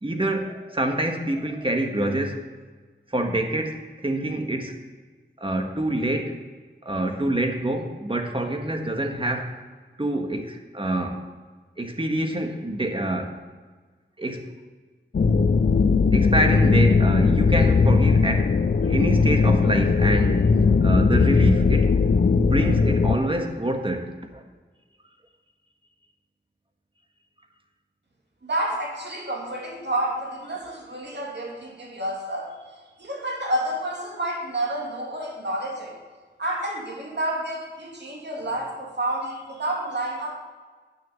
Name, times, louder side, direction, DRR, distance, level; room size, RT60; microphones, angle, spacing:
voice 1, 0.0-2.4 3.1-4.8 5.4-6.4 6.8-9.6 10.0-11.2 11.8-13.4 14.2-14.4 16.1-18.5 18.8-22.0 22.3-24.4, right 1 dB, 25° right, 4 dB, 1.6 m, -26 dB
sound 1, 15.1-23.2, left 4 dB, 55° left, 0.5 m, -19 dB
voice 2, 28.4-32.6 33.0-36.0 36.4-40.3, right 1 dB, 65° right, -1 dB, 2.6 m, -29 dB
8.9 x 6.5 x 7.0 m, 1.4 s
cardioid pair, 45°, 20 cm